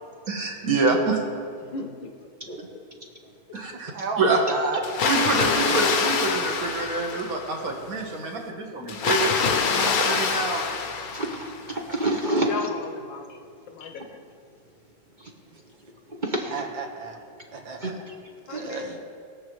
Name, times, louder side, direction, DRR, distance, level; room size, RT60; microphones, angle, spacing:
voice 1, 0.3-1.2 3.5-3.9 4.2-4.4 5.1-10.7, right 3 dB, 50° right, 1 dB, 1.7 m, -26 dB
voice 2, 1.6-2.1 2.7-2.8 3.5-3.6 7.2-7.3 12.2-13.4 13.7-14.2 18.5-19.0, left 4 dB, 80° left, 4 dB, 1.8 m, -36 dB
voice 3, 3.9-4.8 5.3-5.6 16.5-17.2 17.5-18.0 18.5-19.0, right 4 dB, 80° right, 2 dB, 2.0 m, -32 dB
Water, 4.8-7.6 8.9-11.7, left 5 dB, 60° left, 1.2 m, -25 dB
voice 4, 9.4-10.3 11.1-12.7 15.2-15.3 16.1-16.5 17.8-18.2 18.5-18.7, right 1 dB, 35° right, 0 dB, 0.8 m, -29 dB
21.0 x 7.5 x 3.1 m, 2.2 s
omnidirectional pair, 2.0 m